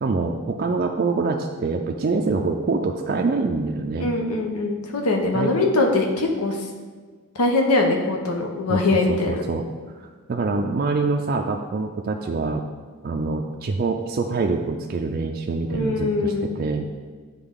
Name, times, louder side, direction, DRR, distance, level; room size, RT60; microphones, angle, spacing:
voice 1, 0.0-4.1 5.3-5.5 8.7-8.8 9.1-12.7 13.0-16.9, right 3 dB, 40° right, 2 dB, 0.4 m, -25 dB
voice 2, 4.0-6.6 7.3-9.4 15.7-16.5, left 2 dB, 85° left, 1 dB, 0.9 m, -22 dB
9.7 x 3.8 x 3.7 m, 1.5 s
head